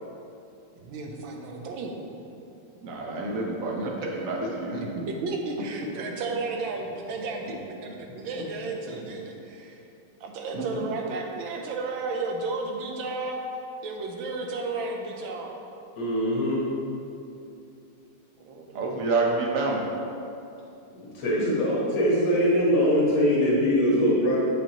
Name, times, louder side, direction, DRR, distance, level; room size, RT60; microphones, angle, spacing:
voice 1, 0.8-2.0 5.2-9.8 10.2-13.4 13.8-15.5 18.4-19.0, right 3 dB, 75° right, 1 dB, 1.4 m, -33 dB
voice 2, 2.8-4.8 7.4-7.5 10.5-10.6 18.7-19.8, right 3 dB, 60° right, -1 dB, 0.9 m, -28 dB
voice 3, 16.0-16.6 21.0-24.4, equal, 70° left, -6 dB, 1.9 m, -22 dB
7.4 x 5.2 x 2.9 m, 2.7 s
omnidirectional pair, 2.3 m